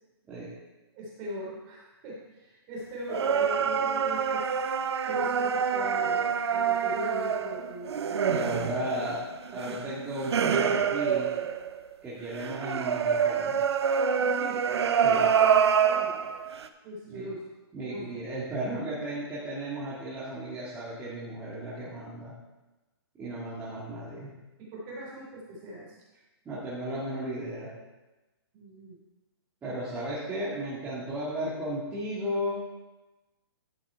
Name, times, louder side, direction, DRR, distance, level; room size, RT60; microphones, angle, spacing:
voice 1, 0.9-4.5 5.0-8.6 8.9-9.0 9.5-9.8 14.2-14.6 15.8-16.4 16.8-17.4 17.9-18.1 24.6-26.0 28.5-29.0, equal, 30° right, -4 dB, 3.6 m, -40 dB
sound 1, 3.1-11.9 12.4-16.7, right 7 dB, 75° right, 0.8 m, -26 dB
voice 2, 8.3-9.2 9.5-11.3 12.0-13.5 15.0-15.2 17.1-17.3 17.7-22.3 23.2-24.3 26.4-27.7 29.6-32.6, right 1 dB, 10° right, -11 dB, 2.3 m, -34 dB
12.0 x 6.4 x 4.6 m, 1.1 s
hypercardioid pair, 150°, 14 cm